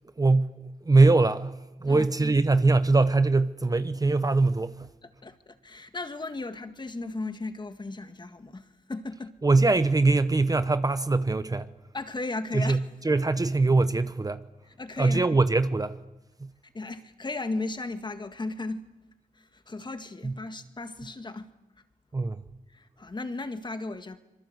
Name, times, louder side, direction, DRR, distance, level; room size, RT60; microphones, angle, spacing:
voice 1, 0.2-4.9 9.4-11.7 12.5-14.4 15.0-16.0 16.4-16.5 20.2-20.4 22.1-22.4, right 3 dB, 25° right, 0.9 m, -22 dB
voice 2, 1.8-2.3 5.2-9.3 11.9-12.8 14.8-15.3 16.7-18.9 19.4-21.5 22.7-24.2, left 2 dB, 30° left, 1.8 m, -36 dB
25.5 x 23.5 x 8.0 m
wide cardioid pair, 100°, 15 cm